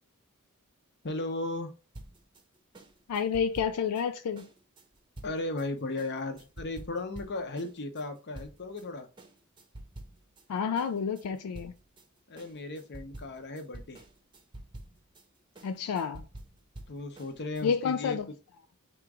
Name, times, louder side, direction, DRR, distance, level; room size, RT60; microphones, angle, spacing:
voice 1, 1.0-1.7 5.2-9.1 12.3-14.0 16.9-18.2, left 2 dB, 50° left, 0.8 m, -36 dB
sound 1, 1.9-8.9 9.2-10.5 10.8-17.7, right 1 dB, 20° right, 0.7 m, -49 dB
voice 2, 3.1-4.5 10.5-11.7 15.6-16.2 17.6-18.2, left 6 dB, 85° left, 0.4 m, -29 dB
3.5 x 3.0 x 4.8 m
head